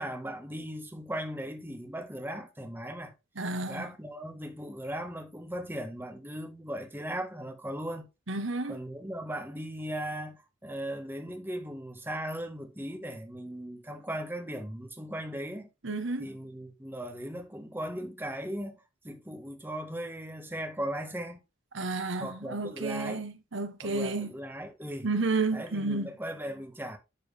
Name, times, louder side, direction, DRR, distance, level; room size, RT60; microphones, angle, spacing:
voice 1, 0.0-3.1 3.6-8.1 8.7-15.7 16.2-21.4 22.1-23.3 23.8-25.1 25.5-27.0, equal, 10° right, 1.7 m, -38 dB
voice 2, 3.4-3.8 8.3-8.8 15.8-16.2 21.7-24.3 25.0-26.1, right 3 dB, 65° right, 1.3 m, -31 dB
11.0 x 4.7 x 3.5 m
head